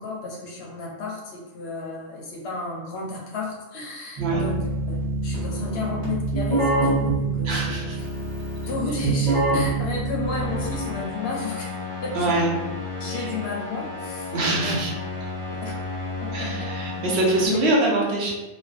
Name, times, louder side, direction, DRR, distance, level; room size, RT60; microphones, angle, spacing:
voice 1, 0.0-8.1 8.6-11.7 12.0-12.3 13.0-14.3 14.6-14.8 15.5-15.7 16.2-16.7 17.4-17.6, left 4 dB, 65° left, -3 dB, 0.7 m, -33 dB
Keyboard (musical), 4.2-11.0, right 3 dB, 35° right, 0.7 m, -25 dB
voice 2, 7.4-8.0 12.1-12.5 13.1-13.3 14.3-14.9 16.3-18.3, right 2 dB, 65° right, -3 dB, 0.9 m, -24 dB
sound 1, 10.2-17.5, left 3 dB, 10° right, 0.9 m, -33 dB
2.5 x 2.1 x 2.4 m, 1.1 s
omnidirectional pair, 1.3 m